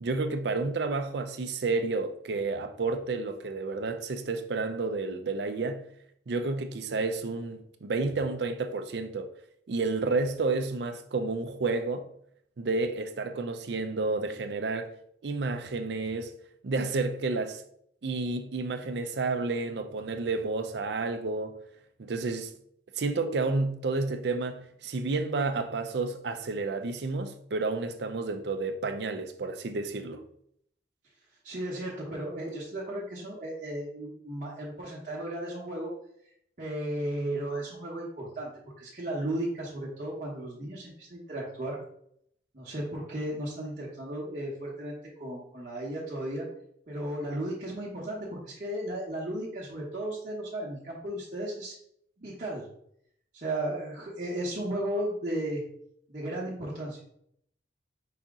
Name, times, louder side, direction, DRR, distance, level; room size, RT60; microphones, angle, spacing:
voice 1, 0.0-5.8 6.3-9.3 9.7-12.1 12.6-14.9 15.2-16.3 16.6-17.6 18.0-21.6 22.0-22.5 23.0-30.2, right 3 dB, 70° right, 0.5 m, -30 dB
voice 2, 31.4-35.9 36.6-38.5 38.8-41.8 42.5-46.5 46.9-51.7 52.2-52.7 53.3-55.6 56.1-57.0, right 1 dB, 45° right, 1.0 m, -35 dB
4.9 x 2.8 x 3.6 m
head